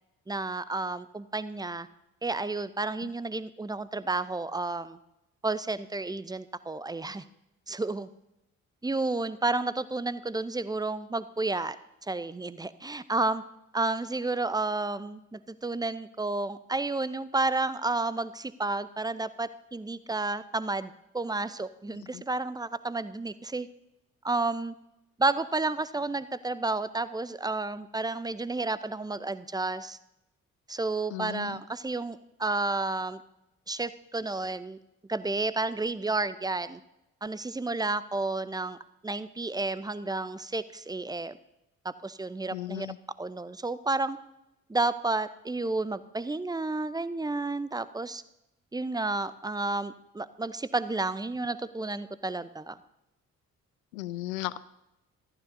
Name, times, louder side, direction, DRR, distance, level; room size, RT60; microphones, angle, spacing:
voice 1, 0.3-1.9 2.2-5.0 5.4-7.2 7.7-8.1 8.8-11.8 12.1-13.4 13.7-23.7 24.2-24.7 25.2-30.0 30.7-33.2 33.7-34.8 35.1-36.8 37.2-38.8 39.0-41.4 41.8-42.9 43.2-44.2 44.7-48.2 48.7-52.8, right 3 dB, 10° right, 15 dB, 0.7 m, -31 dB
voice 2, 31.1-31.6 42.5-43.0 53.9-54.6, left 16 dB, 80° left, 18 dB, 0.6 m, -36 dB
20.5 x 14.5 x 2.7 m, 0.89 s
figure-of-eight pair, 40°, 40 cm